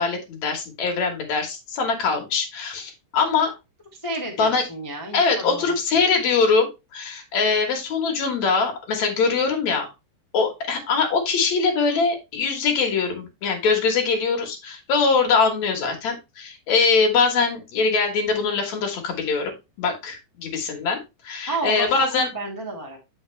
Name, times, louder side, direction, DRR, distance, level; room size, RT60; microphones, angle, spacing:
voice 1, 0.0-3.5 4.4-4.6 5.1-9.9 10.3-22.3, left 4 dB, 60° left, 3 dB, 2.7 m, -22 dB
voice 2, 3.9-5.6 21.5-23.0, right 2 dB, 15° left, -1 dB, 0.7 m, -31 dB
8.0 x 5.9 x 3.2 m, 0.25 s
omnidirectional pair, 3.7 m